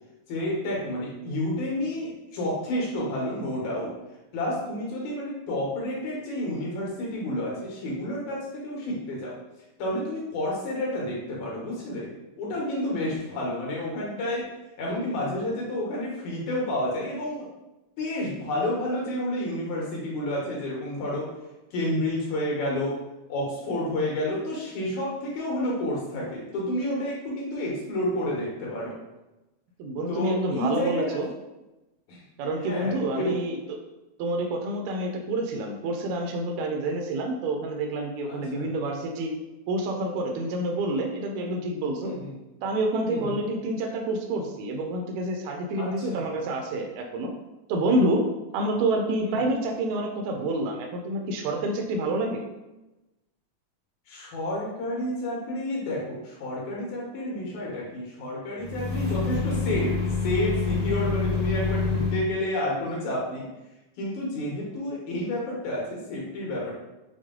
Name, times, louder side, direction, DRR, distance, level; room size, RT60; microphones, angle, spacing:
voice 1, 0.3-3.9 4.3-9.4 9.8-12.1 12.4-14.5 14.8-17.5 18.0-21.3 21.7-23.0 23.3-28.9 30.1-31.2 32.1-32.2 32.6-33.4 38.3-38.7 42.0-42.3 43.1-43.4 45.8-46.3 49.2-49.4 54.1-60.0 60.2-63.5 64.0-66.7, left 1 dB, 70° left, -3 dB, 2.6 m, -30 dB
voice 2, 29.8-31.3 32.4-33.6 34.2-39.3 39.7-42.1 42.6-47.3 47.7-48.3 48.5-52.4, right 1 dB, 75° right, 2 dB, 1.8 m, -28 dB
sound 1, 58.6-62.3, left 4 dB, 40° right, 0.6 m, -27 dB
6.3 x 2.3 x 3.6 m, 1.0 s
omnidirectional pair, 3.6 m